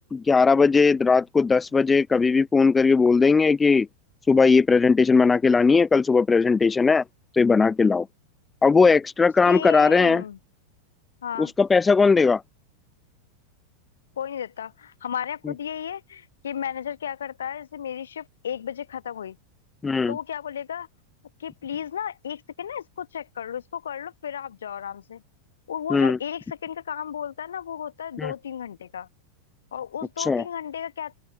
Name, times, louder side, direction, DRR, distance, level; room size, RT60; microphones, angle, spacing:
voice 1, 0.1-3.9 4.3-7.0 7.3-8.1 8.6-10.2 11.4-12.4 19.8-20.1 25.9-26.2 28.2-28.3 30.3-30.4, left 4 dB, 15° left, 0.4 m, -18 dB
voice 2, 9.4-10.4 11.2-11.5 14.2-19.4 20.1-20.9 21.4-25.2 25.7-29.1 29.7-31.2, left 9 dB, 65° left, 1.5 m, -34 dB
open air
figure-of-eight pair, 90°, 0 cm